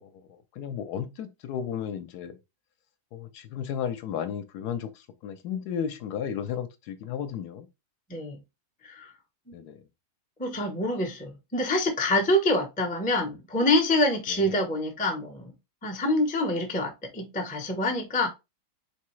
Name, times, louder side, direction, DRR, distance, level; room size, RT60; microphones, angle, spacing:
voice 1, 0.0-2.3 3.1-7.7 9.5-9.8 14.3-14.6, left 8 dB, 75° left, 1.1 m, -34 dB
voice 2, 10.4-15.5 15.8-18.3, left 1 dB, 10° left, 0.4 m, -26 dB
3.7 x 3.7 x 3.1 m
omnidirectional pair, 1.8 m